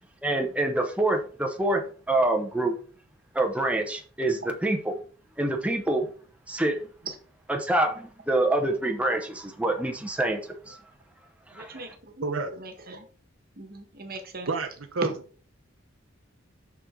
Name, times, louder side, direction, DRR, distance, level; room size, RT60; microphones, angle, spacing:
voice 1, 0.2-2.8 3.3-5.0 5.4-6.1 6.5-6.9 7.5-10.8 11.5-11.9, right 2 dB, 5° right, 3 dB, 0.9 m, -26 dB
voice 2, 11.5-12.2 12.6-13.0 13.6-14.5 15.0-15.1, right 2 dB, 50° right, 6 dB, 1.4 m, -38 dB
voice 3, 14.5-15.1, right 4 dB, 80° right, 6 dB, 0.8 m, -29 dB
6.6 x 6.3 x 3.8 m, 0.40 s
head